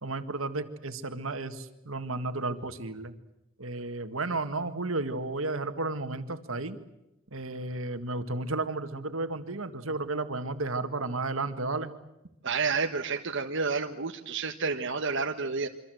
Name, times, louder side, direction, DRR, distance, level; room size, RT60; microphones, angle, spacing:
voice 1, 0.0-3.1 3.6-6.8 7.3-11.9, right 2 dB, 85° right, 9 dB, 1.9 m, -33 dB
voice 2, 12.4-15.7, right 4 dB, 65° right, 4 dB, 1.3 m, -30 dB
26.5 x 25.0 x 7.9 m, 0.90 s
head